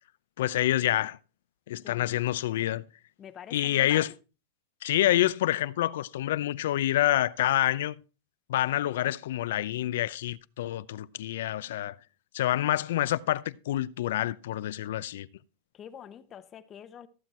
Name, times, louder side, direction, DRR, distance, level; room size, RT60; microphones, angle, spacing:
voice 1, 0.4-1.2 1.7-2.8 3.5-4.1 4.8-8.0 8.5-12.0 12.3-15.3, left 13 dB, 80° left, 0.6 m, -27 dB
voice 2, 1.8-2.3 3.2-4.1 15.7-17.1, left 9 dB, 25° left, 0.9 m, -47 dB
14.5 x 7.8 x 4.3 m
supercardioid pair, 150°, 0 cm